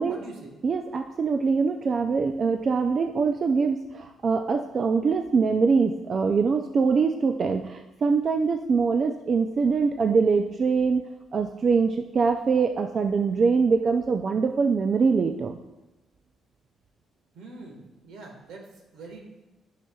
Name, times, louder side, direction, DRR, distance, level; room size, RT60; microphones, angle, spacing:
voice 1, 0.1-0.5 17.3-19.2, right 3 dB, 85° right, 1 dB, 1.5 m, -44 dB
voice 2, 0.6-11.0 11.3-15.6, right 5 dB, 45° right, 5 dB, 0.4 m, -23 dB
9.9 x 5.9 x 2.3 m, 1.1 s
cardioid pair, 90°, 0 cm